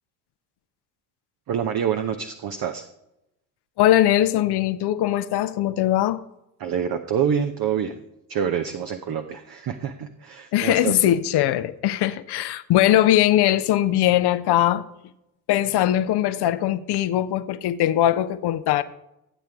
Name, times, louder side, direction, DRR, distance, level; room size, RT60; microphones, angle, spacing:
voice 1, 1.5-2.9 6.6-8.0 8.3-11.1, right 8 dB, 45° right, 1.0 m, -26 dB
voice 2, 3.8-6.2 10.5-14.8 15.5-18.8, left 13 dB, 55° left, 0.8 m, -20 dB
13.5 x 8.8 x 3.6 m
hypercardioid pair, 50°, 48 cm